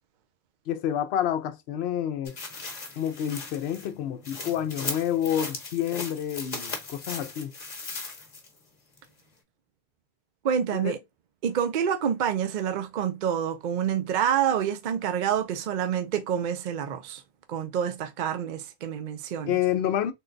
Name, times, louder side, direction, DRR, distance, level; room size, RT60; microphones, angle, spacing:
voice 1, 0.7-2.4 3.0-7.5 10.7-10.9 19.5-20.1, left 10 dB, 75° left, 0.8 m, -28 dB
sound 1, 2.3-8.6 9.0-9.1, left 3 dB, 40° left, 1.0 m, -38 dB
voice 2, 10.4-11.0 11.4-17.2 17.5-19.6, right 8 dB, 55° right, 0.6 m, -27 dB
3.8 x 2.2 x 3.8 m
omnidirectional pair, 1.1 m